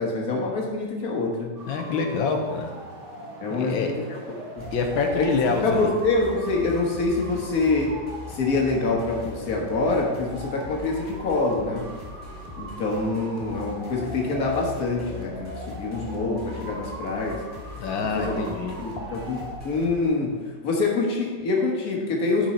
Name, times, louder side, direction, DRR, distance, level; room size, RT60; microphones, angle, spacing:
voice 1, 0.0-1.5 3.4-4.2 4.6-4.7 5.1-5.3 5.6-8.0 8.3-11.8 12.6-17.4 18.1-18.4 18.8-20.4 20.6-22.5, left 3 dB, 50° left, -1 dB, 1.7 m, -25 dB
sound 1, 1.6-19.6, right 1 dB, 65° right, 2.0 m, -41 dB
voice 2, 1.7-2.7 3.5-3.9 4.7-5.9 17.8-18.7, left 4 dB, 80° left, 4 dB, 1.6 m, -26 dB
sound 2, 4.6-20.0, left 3 dB, 25° left, 1.9 m, -41 dB
10.5 x 4.5 x 4.3 m, 1.4 s
omnidirectional pair, 2.1 m